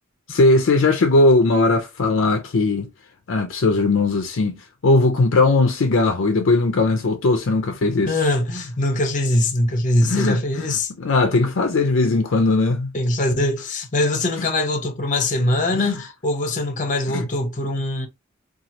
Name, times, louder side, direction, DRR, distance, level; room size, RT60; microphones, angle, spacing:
voice 1, 0.3-2.9 3.3-4.6 4.8-8.1 10.0-12.9 14.4-14.5 15.7-15.9 17.1-17.2, left 2 dB, 65° left, 0.5 m, -19 dB
voice 2, 8.1-10.9 12.9-18.1, left 1 dB, 40° left, 0.8 m, -22 dB
3.0 x 2.4 x 2.7 m
head